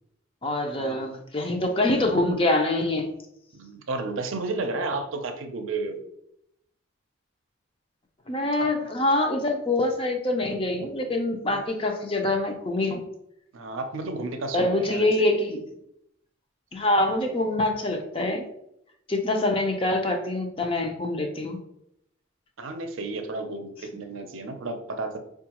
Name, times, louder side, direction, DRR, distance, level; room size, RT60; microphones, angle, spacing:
voice 1, 0.4-3.1 8.3-13.0 14.5-15.7 16.7-18.4 19.1-21.6, left 2 dB, 25° left, 3 dB, 0.4 m, -25 dB
voice 2, 3.5-6.1 8.6-8.7 11.5-11.6 13.5-15.6 22.6-25.2, right 3 dB, 75° right, 6 dB, 0.5 m, -32 dB
4.5 x 2.3 x 2.9 m, 0.77 s
head